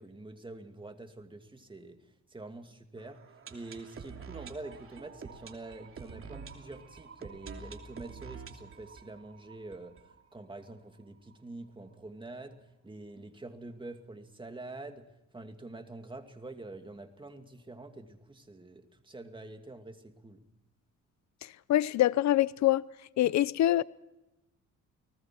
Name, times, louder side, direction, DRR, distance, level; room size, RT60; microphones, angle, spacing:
voice 1, 0.0-2.0 2.3-3.2 3.5-20.4, right 2 dB, 15° right, 2.5 m, -46 dB
sound 1, 3.0-10.7 11.0-11.1 11.3-11.4 11.9-12.0, right 5 dB, 45° right, 2.9 m, -48 dB
voice 2, 21.4-22.8 23.2-23.8, left 13 dB, 65° left, 0.7 m, -25 dB
30.0 x 19.5 x 4.6 m
cardioid pair, 90°, 30 cm